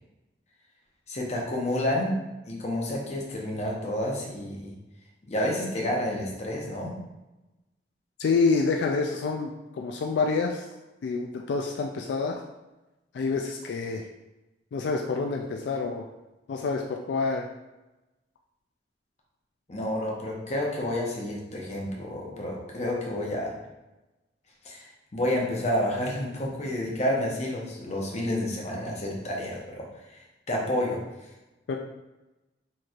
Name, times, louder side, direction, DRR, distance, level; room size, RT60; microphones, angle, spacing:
voice 1, 1.1-2.2 2.4-4.7 5.3-6.9 19.7-23.5 24.6-29.8 30.5-31.0, left 1 dB, 40° left, -2 dB, 0.8 m, -29 dB
voice 2, 8.2-10.7 11.0-12.4 13.1-14.0 14.7-16.0 16.5-17.5 31.7-31.8, left 4 dB, 75° left, 1 dB, 0.3 m, -27 dB
4.3 x 3.1 x 2.4 m, 1.0 s
head